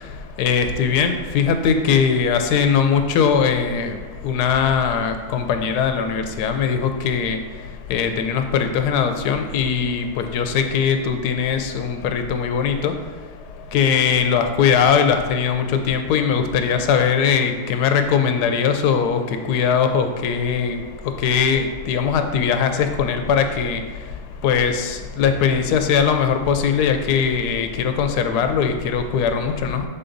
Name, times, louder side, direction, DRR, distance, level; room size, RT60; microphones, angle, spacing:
voice 1, 0.4-4.0 4.2-7.4 7.9-12.9 13.7-19.2 19.5-20.8 21.2-23.8 24.4-29.8, left 7 dB, 90° left, 7 dB, 1.1 m, -20 dB
6.8 x 3.9 x 3.8 m, 1.4 s
omnidirectional pair, 1.7 m